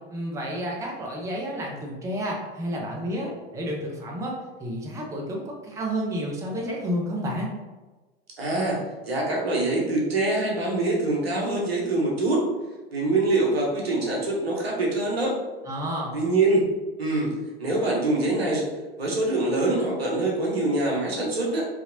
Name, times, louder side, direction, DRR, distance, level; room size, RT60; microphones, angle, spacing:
voice 1, 0.1-7.5 15.7-16.2, equal, 10° right, -2 dB, 0.5 m, -30 dB
voice 2, 8.4-12.5 12.9-15.4 16.1-16.6 17.0-17.3 17.6-18.7 19.0-21.7, right 2 dB, 80° right, -3 dB, 0.9 m, -24 dB
2.9 x 2.8 x 2.5 m, 1.2 s
figure-of-eight pair, 80°, 30 cm